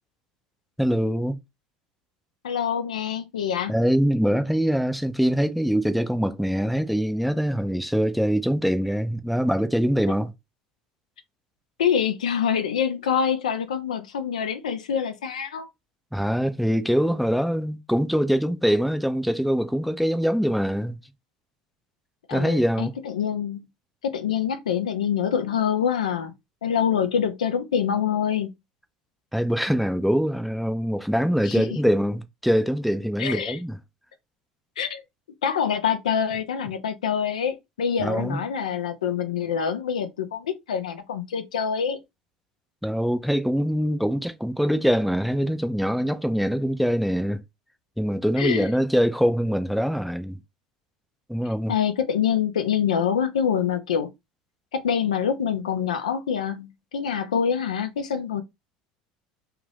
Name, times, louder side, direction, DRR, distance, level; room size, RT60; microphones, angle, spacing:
voice 1, 0.8-1.4 3.7-10.3 16.1-21.0 22.3-22.9 29.3-33.8 38.0-38.4 42.8-47.4 48.0-50.4 51.3-51.7, equal, ahead, 0.5 m, -23 dB
voice 2, 2.4-3.7 11.8-15.7 22.3-23.6 24.0-26.3 26.6-28.5 31.4-31.6 33.2-33.6 34.8-35.0 35.4-42.0 48.4-48.7 51.7-54.1 54.7-58.4, left 8 dB, 85° left, 0.5 m, -25 dB
2.5 x 2.4 x 3.3 m
hypercardioid pair, 80°, 4 cm